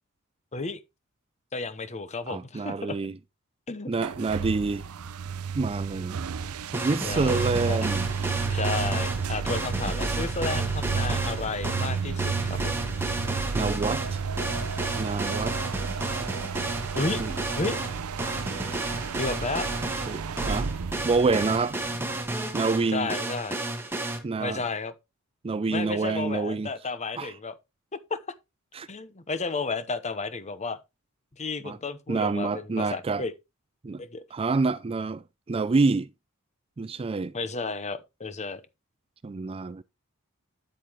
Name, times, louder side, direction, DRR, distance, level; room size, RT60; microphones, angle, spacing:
voice 1, 1.5-3.0 3.7-3.9 7.0-7.9 8.5-12.7 16.9-17.2 17.6-17.8 19.2-19.7 22.9-23.6 24.4-24.9 25.7-27.5 28.1-28.2 28.9-30.8 31.4-33.3 34.0-34.2 37.3-38.6, left 3 dB, 30° left, 0.9 m, -32 dB
voice 2, 2.3-3.1 3.9-4.8 5.5-6.2 6.7-8.1 13.5-14.2 15.0-15.6 17.2-17.4 20.1-20.7 21.0-21.8 22.5-23.1 24.2-24.6 25.4-26.7 27.2-27.3 28.7-28.9 31.6-31.8 32.1-33.2 33.8-34.0 34.3-36.1 36.8-37.3 39.2-39.8, right 3 dB, 25° right, 0.4 m, -27 dB
sound 1, 4.0-22.5, right 5 dB, 85° right, 0.5 m, -32 dB
sound 2, 6.7-24.2, right 2 dB, 10° right, 1.6 m, -32 dB
9.2 x 8.4 x 3.0 m
head